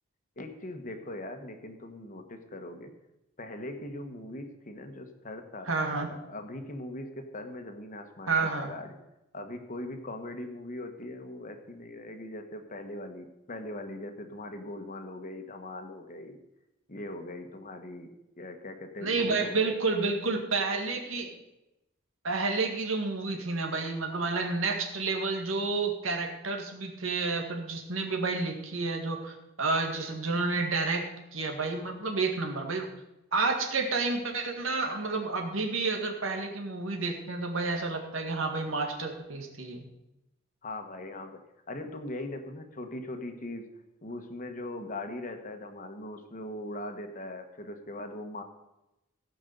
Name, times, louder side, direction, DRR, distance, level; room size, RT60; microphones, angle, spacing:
voice 1, 0.4-2.9 3.4-5.7 6.1-8.9 9.3-16.4 16.9-18.1 18.4-19.6 40.6-41.4 41.7-43.6 44.0-48.4, left 1 dB, 40° left, 6 dB, 1.3 m, -40 dB
voice 2, 5.7-6.1 8.3-8.7 19.0-21.3 22.2-32.9 33.3-39.9, right 3 dB, 80° right, 3 dB, 1.9 m, -30 dB
16.0 x 5.5 x 6.7 m, 0.92 s
head